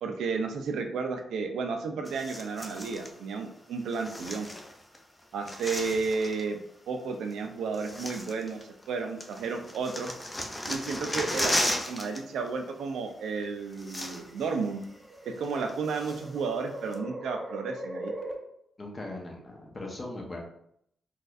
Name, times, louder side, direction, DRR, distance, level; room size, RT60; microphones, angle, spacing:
voice 1, 0.0-4.5 5.3-6.6 6.9-8.6 8.9-10.1 10.7-14.8 15.3-18.1, right 4 dB, 80° right, 4 dB, 0.4 m, -32 dB
sound 1, 2.1-3.1 3.9-5.0 5.2-6.5 7.3-7.4 7.7-8.9 9.2-12.2 12.5-12.7 13.4-13.5 13.7-14.5 14.8-14.9 15.4-16.4 16.9-17.0, left 1 dB, 20° left, 0.6 m, -35 dB
sound 2, 10.3-10.6 11.8-12.2 13.1-18.4, right 1 dB, 30° right, 0.6 m, -41 dB
voice 2, 18.8-20.4, left 2 dB, 35° left, -1 dB, 0.9 m, -39 dB
4.0 x 2.4 x 2.5 m, 0.74 s
cardioid pair, 60°, 0 cm